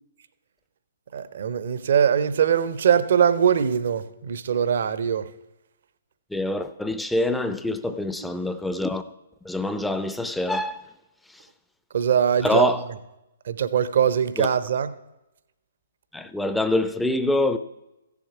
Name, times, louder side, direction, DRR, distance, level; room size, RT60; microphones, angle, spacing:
voice 1, 1.1-5.3 11.9-12.7 13.5-14.9, right 8 dB, 50° right, 0.6 m, -22 dB
voice 2, 6.3-9.0 9.5-10.8 12.4-12.9 14.4-14.5 16.1-17.6, left 2 dB, 5° left, 0.4 m, -25 dB
15.0 x 7.1 x 4.8 m
figure-of-eight pair, 125°, 0 cm